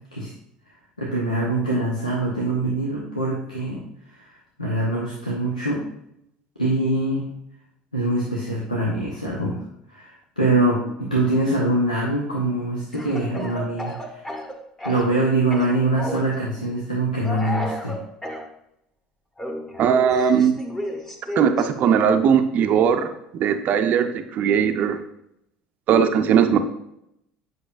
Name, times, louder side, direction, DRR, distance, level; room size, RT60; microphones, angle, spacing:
voice 1, 1.0-3.8 4.1-4.3 4.6-5.8 6.6-7.2 7.9-9.6 9.9-14.2 14.8-17.9, right 2 dB, 90° left, -4 dB, 0.9 m, -23 dB
Speech / Cough, 12.9-15.2 15.5-16.3 17.2-18.4 19.4-21.7, left 1 dB, 10° left, 1.1 m, -32 dB
voice 2, 19.8-20.6 21.4-23.1 23.3-25.0 25.9-26.6, right 7 dB, 45° right, 7 dB, 0.5 m, -19 dB
7.9 x 5.5 x 2.5 m, 0.79 s
figure-of-eight pair, 65°, 4 cm